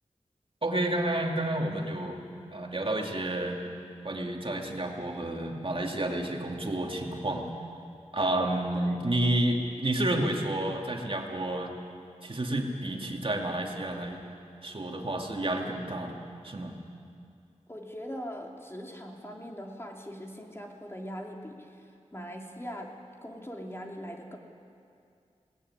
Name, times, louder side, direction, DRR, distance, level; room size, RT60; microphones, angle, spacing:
voice 1, 0.6-3.6 4.0-7.5 8.1-11.7 12.2-14.2 14.6-16.2 16.4-16.7, right 1 dB, 45° right, 1 dB, 2.5 m, -30 dB
voice 2, 17.7-22.9 23.2-24.4, equal, 20° left, 0 dB, 2.9 m, -41 dB
21.5 x 18.5 x 9.8 m, 2.4 s
wide cardioid pair, 65°, 12 cm